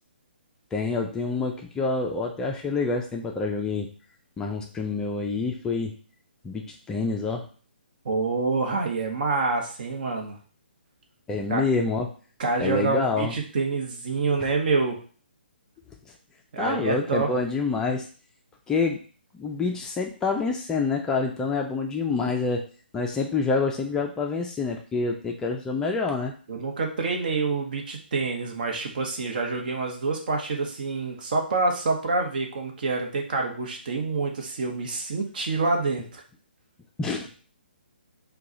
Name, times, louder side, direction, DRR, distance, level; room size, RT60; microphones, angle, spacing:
voice 1, 0.7-3.9 4.4-5.9 6.4-7.5 11.3-12.1 12.6-13.3 14.4-14.5 16.6-18.1 18.7-19.0 19.4-22.6 22.9-26.3 37.0-37.3, left 4 dB, 10° left, 1 dB, 0.4 m, -27 dB
voice 2, 8.0-10.4 11.5-11.7 12.4-15.0 16.5-17.3 26.5-36.2, right 3 dB, 55° right, 2 dB, 1.1 m, -27 dB
4.7 x 2.3 x 3.9 m, 0.41 s
figure-of-eight pair, 135°, 6 cm